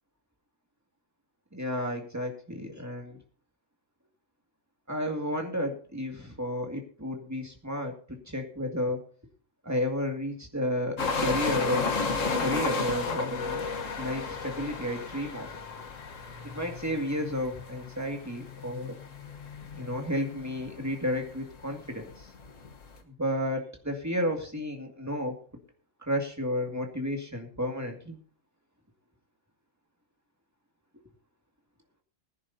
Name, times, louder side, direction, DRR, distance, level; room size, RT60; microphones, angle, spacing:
voice 1, 1.5-3.2 4.9-9.0 9.6-12.0 12.4-13.7 14.0-15.5 16.4-19.0 19.7-22.3 23.1-25.4 26.1-28.2, equal, 10° right, 2 dB, 2.1 m, -32 dB
sound 1, 11.0-23.0, left 4 dB, 75° left, 1.7 m, -34 dB
21.0 x 10.5 x 2.8 m, 0.41 s
omnidirectional pair, 1.3 m